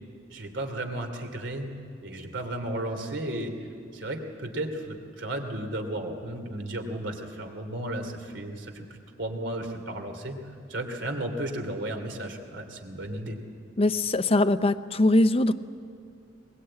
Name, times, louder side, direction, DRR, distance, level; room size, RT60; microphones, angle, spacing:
voice 1, 0.3-1.7 2.0-3.5 3.9-8.8 9.2-10.4 10.7-13.4, right 1 dB, 80° right, 4 dB, 2.9 m, -34 dB
voice 2, 13.8-15.5, left 2 dB, 30° left, 12 dB, 0.6 m, -22 dB
22.0 x 20.5 x 8.8 m, 2.3 s
head